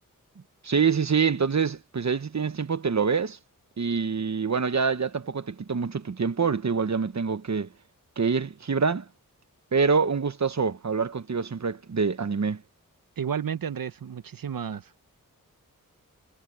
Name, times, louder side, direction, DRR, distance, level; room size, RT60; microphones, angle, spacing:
voice 1, 0.6-3.4 3.8-7.7 8.2-9.0 9.7-12.6, right 5 dB, 55° right, 1.2 m, -25 dB
voice 2, 13.2-15.1, right 8 dB, 80° right, 1.0 m, -32 dB
cardioid pair, 55°, 34 cm